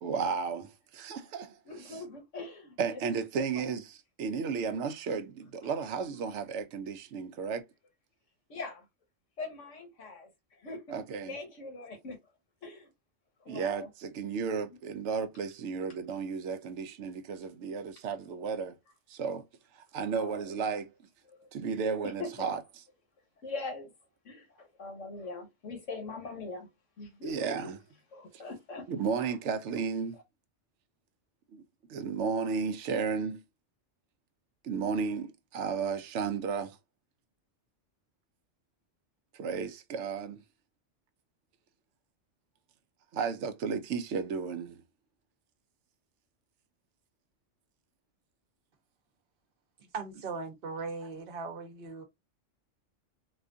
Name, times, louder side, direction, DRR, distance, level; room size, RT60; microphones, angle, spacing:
voice 1, 0.0-2.0 2.8-7.6 10.9-11.4 13.5-18.8 19.1-19.4 19.7-20.9 21.5-22.8 27.2-27.8 28.9-30.2 31.5-31.6 31.9-33.4 34.6-36.8 39.3-40.4 43.1-44.8, right 5 dB, 75° right, 0.9 m, -33 dB
voice 2, 1.7-3.0 8.5-8.8 9.4-10.3 10.6-11.0 11.3-12.2 12.6-12.9 13.4-13.9 20.1-20.4 22.2-22.5 23.4-23.9 24.2-26.7 27.0-27.5 28.1-28.8, left 3 dB, 85° left, 1.6 m, -41 dB
voice 3, 49.9-52.0, right 4 dB, 50° right, 1.0 m, -38 dB
4.2 x 2.3 x 2.5 m
omnidirectional pair, 1.2 m